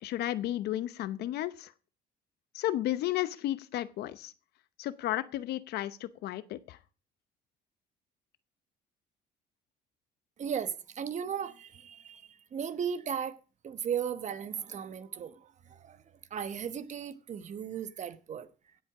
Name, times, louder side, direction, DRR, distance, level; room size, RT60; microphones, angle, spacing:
voice 1, 0.0-1.7 2.5-4.3 4.8-6.8, left 13 dB, 75° left, 0.9 m, -33 dB
voice 2, 10.4-13.4 13.6-18.8, right 8 dB, 45° right, 1.1 m, -36 dB
17.0 x 7.9 x 4.9 m
cardioid pair, 110°, 17 cm